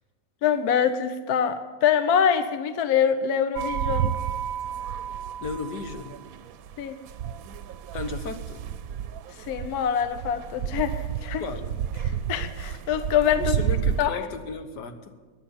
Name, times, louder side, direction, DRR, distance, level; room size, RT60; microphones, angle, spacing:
voice 1, 0.4-4.2 6.8-7.0 9.5-11.4 12.0-13.6 14.0-14.2, left 8 dB, 70° left, 10 dB, 1.2 m, -24 dB
sound 1, 3.6-14.1, right 8 dB, 65° right, 1.0 m, -31 dB
voice 2, 5.4-6.2 7.9-8.6 11.4-11.8 13.4-15.1, left 4 dB, 85° left, 8 dB, 1.8 m, -35 dB
13.5 x 10.5 x 9.7 m, 1.4 s
omnidirectional pair, 1.7 m